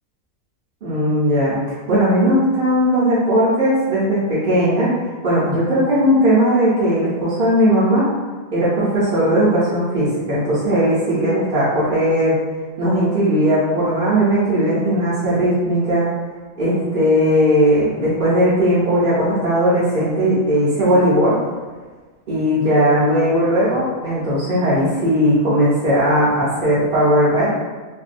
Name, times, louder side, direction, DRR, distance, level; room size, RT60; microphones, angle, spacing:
voice 1, 0.8-1.6 1.9-4.9 5.2-8.1 8.5-12.4 12.8-16.1 16.6-21.4 22.3-27.5, equal, 55° right, -10 dB, 0.6 m, -17 dB
2.6 x 2.2 x 2.5 m, 1.3 s
omnidirectional pair, 1.4 m